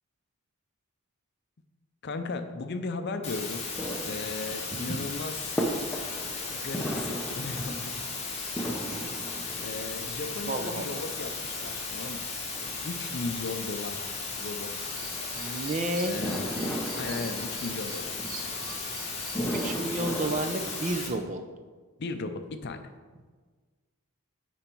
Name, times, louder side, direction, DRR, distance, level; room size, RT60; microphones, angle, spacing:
voice 1, 2.0-3.7 4.1-5.5 6.5-7.9 9.0-12.2 12.8-14.1 14.4-14.9 16.0-16.6 17.0-18.5 19.6-19.8 22.0-22.9, left 3 dB, 50° left, 8 dB, 0.5 m, -36 dB
sound 1, 3.2-21.1, left 4 dB, 30° left, 1.3 m, -36 dB
sound 2, 3.5-21.1, equal, 5° left, 0.7 m, -38 dB
voice 2, 4.7-5.2 10.5-10.9 15.3-16.2 19.5-21.4, right 2 dB, 35° right, 7 dB, 0.5 m, -31 dB
sound 3, 14.8-19.8, right 3 dB, 70° right, 1.1 m, -46 dB
9.1 x 4.5 x 4.5 m, 1.5 s
head